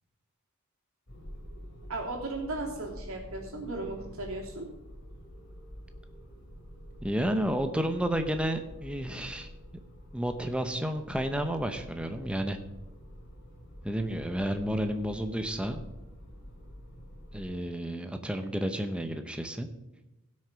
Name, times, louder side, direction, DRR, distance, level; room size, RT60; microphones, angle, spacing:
sound 1, 1.1-17.5, equal, 50° left, 2.6 m, -47 dB
voice 1, 1.9-4.7, right 2 dB, 70° right, -1 dB, 3.1 m, -36 dB
voice 2, 7.0-9.5 10.1-12.6 13.8-15.8 17.3-19.7, equal, 5° right, 7 dB, 0.7 m, -31 dB
16.5 x 6.4 x 5.1 m, 0.98 s
head